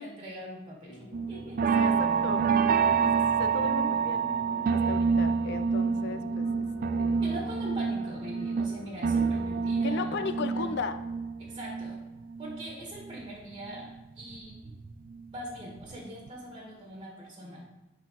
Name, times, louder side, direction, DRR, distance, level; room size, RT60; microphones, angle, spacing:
voice 1, 0.0-2.0 7.2-10.8 11.4-12.0 12.4-13.9 14.2-14.6 15.3-17.7, equal, 25° right, -2 dB, 1.7 m, -42 dB
sound 1, 0.8-9.7, left 1 dB, 25° left, 1.4 m, -47 dB
sound 2, 1.1-13.3 13.6-15.2 15.6-16.0 16.3-16.4, right 5 dB, 45° right, 0.3 m, -28 dB
voice 2, 1.8-2.5 2.9-4.3 4.7-7.2 9.8-11.0, left 4 dB, 55° left, 9 dB, 0.5 m, -36 dB
10.0 x 4.0 x 4.1 m, 1.1 s
head